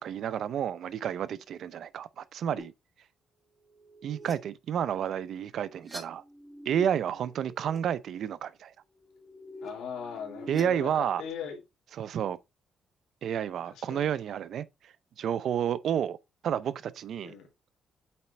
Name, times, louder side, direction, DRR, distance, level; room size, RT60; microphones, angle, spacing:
voice 1, 0.0-2.7 4.0-6.2 6.7-8.7 10.5-11.2 12.0-12.4 13.2-14.7 15.2-16.2 16.4-17.3, right 9 dB, 65° right, 0.5 m, -30 dB
sound 1, 2.6-2.7 3.7-4.3 5.5-6.9 7.2-7.8 8.9-11.3, equal, 10° right, 2.4 m, -46 dB
voice 2, 9.6-11.6 13.6-14.1 17.2-17.5, left 7 dB, 85° left, 2.8 m, -40 dB
8.5 x 4.2 x 3.3 m
cardioid pair, 90°, 0 cm